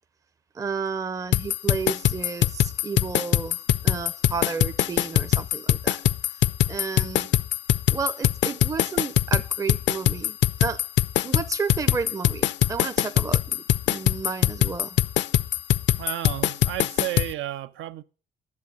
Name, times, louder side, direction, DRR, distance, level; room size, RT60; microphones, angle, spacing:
voice 1, 0.5-6.0 6.3-7.3 7.9-10.8 11.2-15.0, right 5 dB, 15° right, 0.5 m, -32 dB
sound 1, 1.3-17.3, left 13 dB, 65° left, 0.4 m, -22 dB
voice 2, 16.0-18.0, right 14 dB, 80° right, 0.5 m, -32 dB
11.0 x 7.3 x 6.3 m
cardioid pair, 90°, 20 cm